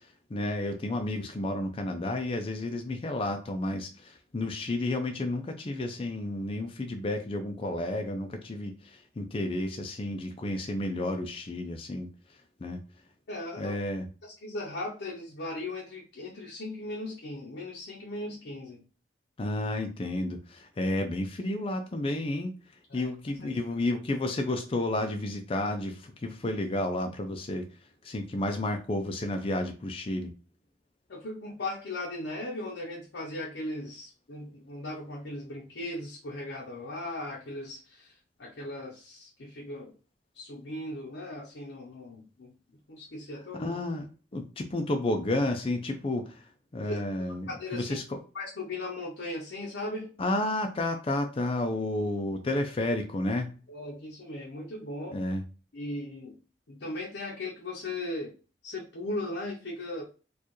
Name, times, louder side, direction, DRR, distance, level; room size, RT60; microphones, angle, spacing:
voice 1, 0.3-12.1 12.6-12.8 13.6-14.0 19.4-22.5 22.9-27.7 28.0-30.3 43.6-44.1 44.3-46.4 46.7-48.2 50.2-53.5 55.1-55.4, left 1 dB, 30° left, 4 dB, 0.4 m, -31 dB
voice 2, 13.3-13.8 14.2-18.8 22.9-23.1 23.4-23.5 31.1-38.1 38.4-39.9 40.3-42.5 42.9-43.8 46.9-47.0 47.5-48.0 48.3-50.1 53.7-55.2 55.7-56.4 56.7-58.3 58.6-60.0, left 2 dB, 80° left, -2 dB, 0.7 m, -38 dB
4.4 x 2.4 x 3.0 m, 0.34 s
head